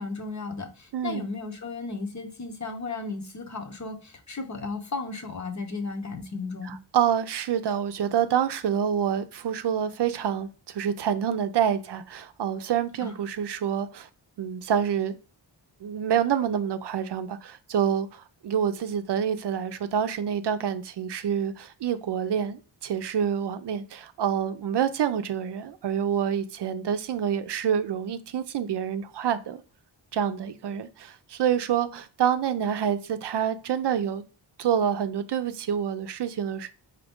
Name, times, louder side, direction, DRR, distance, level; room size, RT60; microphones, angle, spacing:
voice 1, 0.0-6.7 13.0-13.1, left 3 dB, 40° left, 0.9 m, -34 dB
voice 2, 0.9-1.2 6.7-14.1 14.4-15.2 15.8-29.6 30.1-34.2 34.6-36.7, right 8 dB, 70° right, 0.5 m, -27 dB
5.0 x 2.8 x 3.5 m
wide cardioid pair, 85°, 44 cm